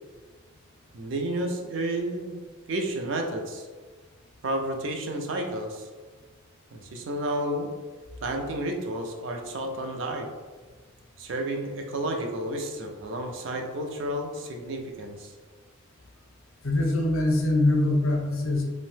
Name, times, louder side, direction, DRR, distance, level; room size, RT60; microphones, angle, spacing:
voice 1, 0.9-3.7 4.4-5.9 6.7-7.7 8.2-10.3 11.2-15.3, right 1 dB, 55° right, 3 dB, 0.4 m, -31 dB
voice 2, 16.6-18.6, left 2 dB, 70° left, 1 dB, 0.5 m, -23 dB
2.6 x 2.0 x 3.2 m, 1.4 s
head